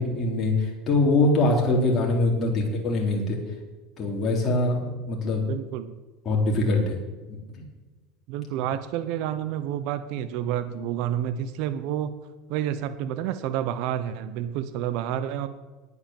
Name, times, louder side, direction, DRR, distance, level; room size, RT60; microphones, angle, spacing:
voice 1, 0.0-3.4 4.0-5.5 6.3-7.0 7.3-7.4, left 2 dB, 35° left, -1 dB, 3.8 m, -23 dB
voice 2, 5.5-5.9 8.3-12.1 12.5-15.5, right 10 dB, 65° right, 11 dB, 0.9 m, -29 dB
9.9 x 9.5 x 7.3 m, 1.2 s
supercardioid pair, 115°, 0 cm